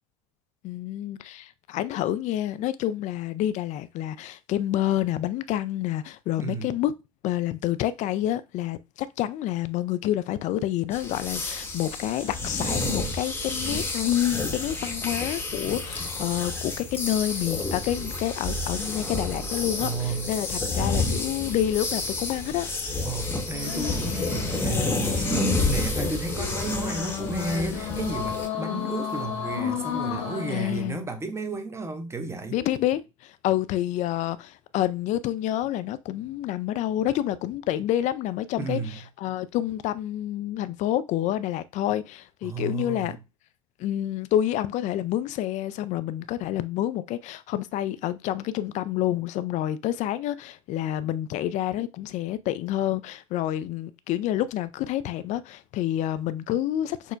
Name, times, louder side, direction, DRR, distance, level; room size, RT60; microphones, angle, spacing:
voice 1, 0.6-6.9 7.2-22.7 28.6-28.9 30.5-31.1 32.5-43.2 43.8-57.1, left 12 dB, 45° left, 0.4 m, -28 dB
voice 2, 6.4-6.8 19.8-20.4 23.0-32.6 38.6-39.0 42.4-43.2, right 3 dB, 15° right, 0.8 m, -33 dB
sound 1, 10.9-28.5, left 2 dB, 15° left, 0.9 m, -29 dB
sound 2, 23.5-30.9, left 8 dB, 75° left, 1.3 m, -33 dB
6.2 x 2.1 x 2.5 m
hypercardioid pair, 75°, 17 cm